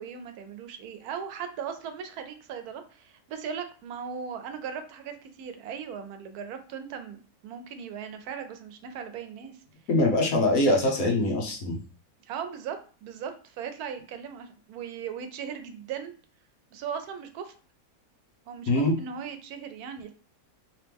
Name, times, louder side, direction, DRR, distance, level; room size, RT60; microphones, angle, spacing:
voice 1, 0.0-9.5 10.1-10.3 12.2-16.1 16.7-17.5 18.5-20.1, right 7 dB, 90° right, 8 dB, 1.1 m, -38 dB
voice 2, 9.9-11.8 18.7-18.9, left 1 dB, 75° left, 1 dB, 1.4 m, -23 dB
3.3 x 3.0 x 3.4 m, 0.40 s
omnidirectional pair, 1.5 m